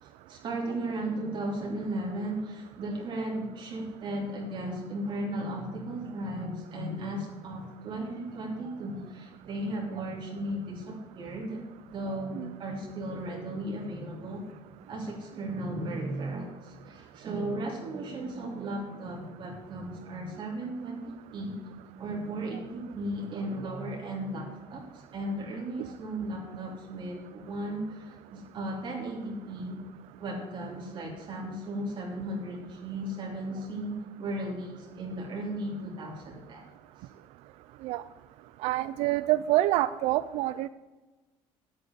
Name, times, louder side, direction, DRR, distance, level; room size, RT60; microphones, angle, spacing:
voice 1, 0.0-11.6 11.9-14.4 14.9-21.6 22.0-29.9 30.2-36.7 37.0-37.1, right 1 dB, 50° right, -2 dB, 3.0 m, -36 dB
voice 2, 38.6-40.7, right 15 dB, 85° right, 14 dB, 0.4 m, -27 dB
8.7 x 8.6 x 8.2 m, 1.2 s
cardioid pair, 105°, 11 cm